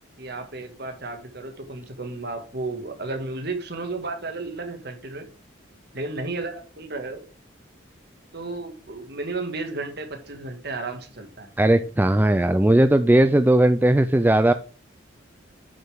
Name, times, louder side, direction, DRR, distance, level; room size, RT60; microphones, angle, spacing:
voice 1, 0.2-5.3 5.9-7.2 8.3-11.5, right 3 dB, 55° right, 5 dB, 1.9 m, -33 dB
voice 2, 11.6-14.5, right 1 dB, 10° right, 10 dB, 0.3 m, -18 dB
8.9 x 6.7 x 3.5 m, 0.37 s
head